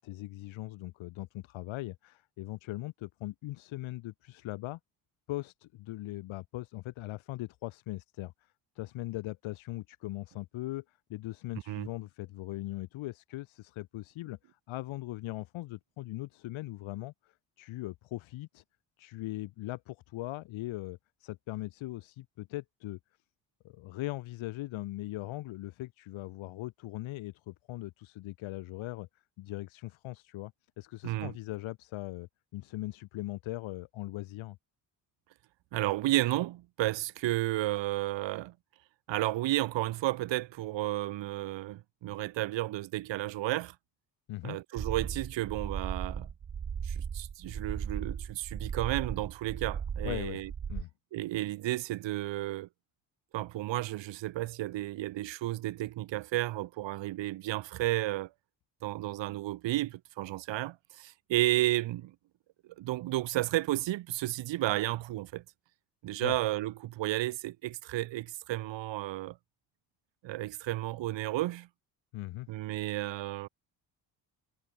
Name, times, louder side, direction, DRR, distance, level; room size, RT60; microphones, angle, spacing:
voice 1, 0.0-4.8 5.3-18.6 19.0-23.0 23.6-29.1 29.4-34.6 44.3-44.6 50.0-50.4 50.7-50.9 66.2-66.4 72.1-72.5, left 17 dB, 80° left, 6.1 m, -40 dB
voice 2, 35.7-38.5 39.1-43.7 44.4-46.3 46.8-50.5 51.1-52.7 53.3-58.3 58.8-62.1 62.8-65.4 66.0-69.4 70.2-71.7 72.5-73.5, right 16 dB, 70° right, 1.1 m, -32 dB
sound 1, 44.8-50.8, right 7 dB, 35° right, 1.2 m, -37 dB
supercardioid pair, 60°, 46 cm